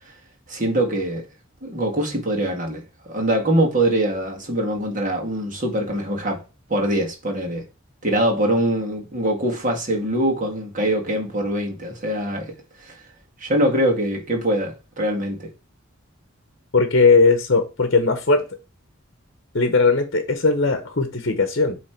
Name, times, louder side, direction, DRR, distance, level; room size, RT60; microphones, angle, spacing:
voice 1, 0.5-1.2 1.6-6.4 6.7-7.6 8.0-12.5 12.8-13.0 13.4-15.5, right 1 dB, 40° right, 1.8 m, -23 dB
voice 2, 16.7-18.4 19.5-21.8, left 3 dB, 55° left, 0.9 m, -18 dB
8.5 x 3.3 x 4.4 m
head